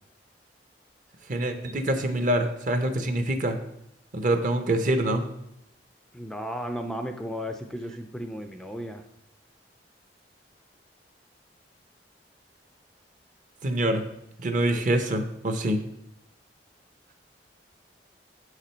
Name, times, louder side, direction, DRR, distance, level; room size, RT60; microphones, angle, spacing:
voice 1, 1.3-3.6 4.1-5.3 13.6-14.0 14.4-15.8, right 1 dB, 50° right, 7 dB, 0.7 m, -25 dB
voice 2, 6.1-9.0, equal, 5° left, 6 dB, 0.3 m, -34 dB
7.1 x 4.9 x 4.3 m, 0.80 s
head